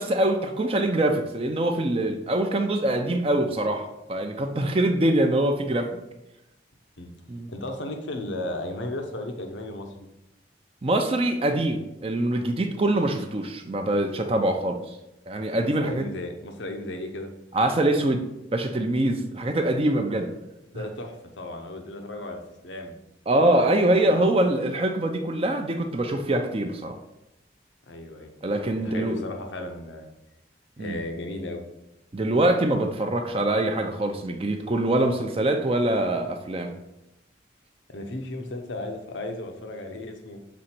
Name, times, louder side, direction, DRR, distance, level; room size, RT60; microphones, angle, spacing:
voice 1, 0.0-5.9 7.3-7.5 10.8-14.8 15.3-16.0 17.5-18.2 18.5-20.3 23.3-27.0 28.4-29.2 30.8-31.0 32.1-36.7, right 1 dB, 30° right, 5 dB, 0.5 m, -24 dB
voice 2, 7.5-10.1 15.8-17.3 20.7-22.9 27.9-28.3 28.8-30.1 30.8-31.6 37.9-40.4, left 1 dB, 85° left, 4 dB, 0.9 m, -35 dB
6.3 x 3.9 x 4.4 m, 0.91 s
head